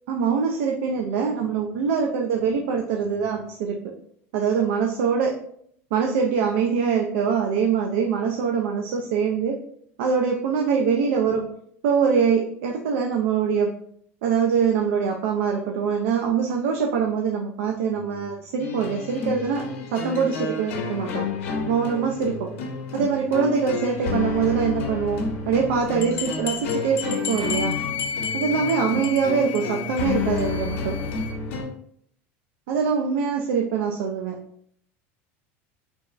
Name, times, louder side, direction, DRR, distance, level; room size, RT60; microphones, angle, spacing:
voice 1, 0.1-3.8 4.3-5.3 5.9-9.6 10.0-11.4 11.8-13.7 14.2-19.6 19.9-21.3 21.7-22.5 22.9-27.7 28.3-31.0 32.7-34.4, right 6 dB, 80° right, 1 dB, 0.4 m, -23 dB
sound 1, 18.6-31.7, left 4 dB, 90° left, 0.7 m, -30 dB
sound 2, 26.0-28.7 29.0-29.3 29.5-29.6 30.0-30.1 30.4-30.5, left 7 dB, 40° left, 0.5 m, -33 dB
Wind instrument woodwind instrument, 27.2-31.3, left 7 dB, 20° right, 0.9 m, -33 dB
3.3 x 2.0 x 2.4 m, 0.66 s
supercardioid pair, 115°, 7 cm